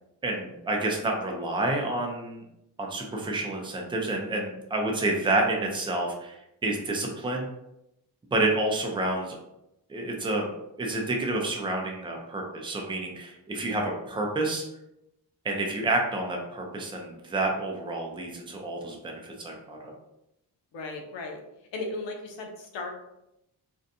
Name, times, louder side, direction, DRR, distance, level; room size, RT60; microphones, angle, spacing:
voice 1, 0.2-2.4 2.8-7.5 8.3-9.4 9.9-10.5 10.8-14.6 15.4-19.9, right 2 dB, 10° right, 0 dB, 0.4 m, -29 dB
voice 2, 20.7-21.4 21.7-22.9, left 3 dB, 85° left, 2 dB, 0.7 m, -36 dB
2.6 x 2.2 x 2.6 m, 0.85 s
cardioid pair, 100°, 43 cm